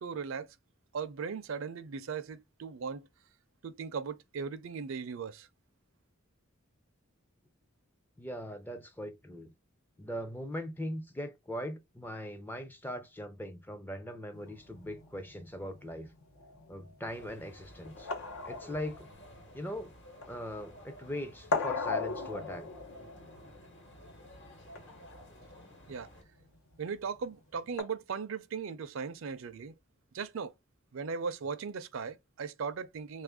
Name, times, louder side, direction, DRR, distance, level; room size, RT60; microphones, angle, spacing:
voice 1, 0.0-0.5 0.9-3.1 3.6-5.5 25.9-26.1 26.8-29.7 30.1-30.5 30.9-33.2, right 5 dB, 65° right, 0.5 m, -38 dB
voice 2, 8.2-9.5 10.0-16.1 16.7-18.1 18.5-19.1 19.5-19.9 20.3-22.7, equal, 10° left, 0.4 m, -40 dB
sound 1, 14.3-27.8, left 3 dB, 80° left, 0.9 m, -40 dB
sound 2, 17.1-26.2, left 1 dB, 60° left, 1.2 m, -54 dB
3.2 x 2.4 x 3.5 m
head